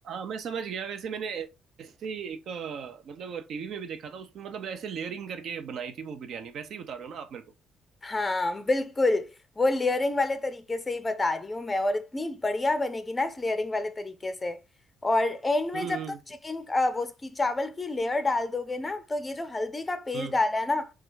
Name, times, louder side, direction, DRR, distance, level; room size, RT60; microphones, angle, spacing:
voice 1, 0.0-1.5 1.8-7.4 15.7-16.2 20.1-20.4, right 6 dB, 60° right, 0.8 m, -36 dB
voice 2, 8.0-9.3 9.6-14.6 15.0-16.0 16.4-20.9, left 2 dB, 15° left, 0.5 m, -28 dB
3.8 x 2.4 x 4.6 m
cardioid pair, 135°, 0 cm